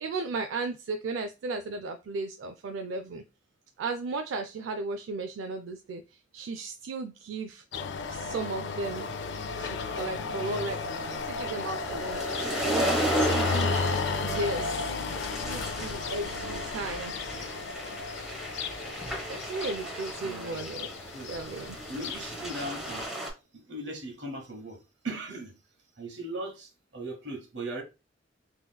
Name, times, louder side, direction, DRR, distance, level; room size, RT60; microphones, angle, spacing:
voice 1, 0.0-3.2 3.8-6.0 6.3-7.6 8.1-9.1 9.6-10.8 11.1-13.7 14.2-14.9 15.4-17.1 19.2-20.9 21.3-21.8, right 3 dB, 85° right, 0.3 m, -35 dB
sound 1, 7.7-23.0, left 4 dB, 65° left, 0.4 m, -34 dB
sound 2, 9.1-23.3, right 1 dB, ahead, 0.9 m, -35 dB
voice 2, 20.2-20.7 21.1-21.4 21.9-23.0 23.7-24.8 25.0-25.6 26.0-27.8, right 1 dB, 65° right, 1.0 m, -38 dB
3.7 x 2.9 x 2.2 m
head